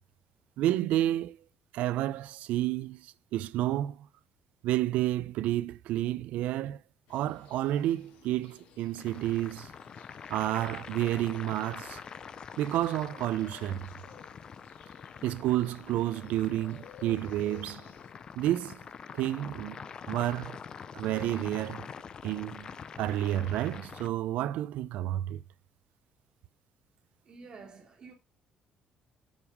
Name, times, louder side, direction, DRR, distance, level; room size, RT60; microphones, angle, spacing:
voice 1, 0.6-1.4 1.7-4.1 4.6-6.8 7.1-9.7 10.3-12.0 12.6-13.9 15.2-17.9 18.4-18.8 19.1-20.6 20.9-21.9 22.2-22.7 23.0-25.4, right 13 dB, 75° right, 0.5 m, -30 dB
sound 1, 7.1-18.1, left 9 dB, 90° left, 1.6 m, -56 dB
sound 2, 8.9-24.1, left 7 dB, 30° left, 0.5 m, -45 dB
voice 2, 27.2-28.1, right 4 dB, 35° right, 2.8 m, -49 dB
7.3 x 5.4 x 4.7 m
cardioid pair, 170°, 2 cm